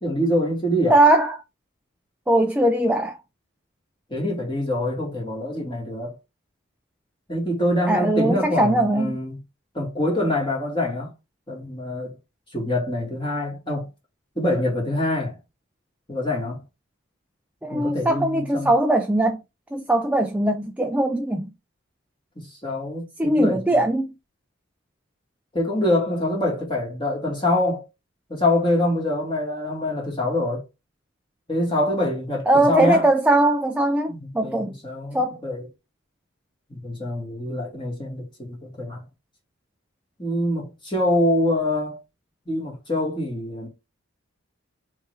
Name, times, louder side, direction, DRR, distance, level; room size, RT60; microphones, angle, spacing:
voice 1, 0.0-1.0 4.1-6.1 7.3-9.4 9.7-11.1 11.5-12.1 12.5-13.9 14.3-15.4 16.1-16.6 17.7-18.7 22.6-23.8 25.5-27.8 28.3-30.6 31.5-33.1 34.1-35.7 36.7-39.0 40.2-42.0 42.5-43.7, left 1 dB, 20° left, 1.7 m, -25 dB
voice 2, 0.9-1.3 2.3-3.1 7.9-9.2 17.6-19.4 19.7-21.5 23.2-24.1 32.5-34.7 35.1-35.4, right 1 dB, 5° right, 0.3 m, -20 dB
3.5 x 3.2 x 4.5 m
head